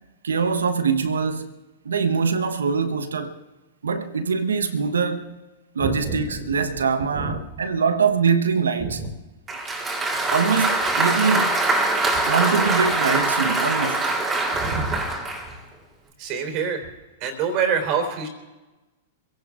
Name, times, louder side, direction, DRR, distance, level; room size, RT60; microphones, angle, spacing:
voice 1, 0.2-1.5 1.8-3.3 3.8-5.4 5.7-9.0 10.3-11.6 12.3-14.1, right 5 dB, 75° right, 1.1 m, -23 dB
voice 2, 5.8-6.4 7.1-7.4 8.8-9.1 14.5-15.1 16.2-16.8 17.2-18.3, right 5 dB, 40° right, 3.7 m, -26 dB
Applause, 9.5-15.5, right 2 dB, 15° right, 3.2 m, -23 dB
26.5 x 16.5 x 2.5 m
figure-of-eight pair, 100°, 0 cm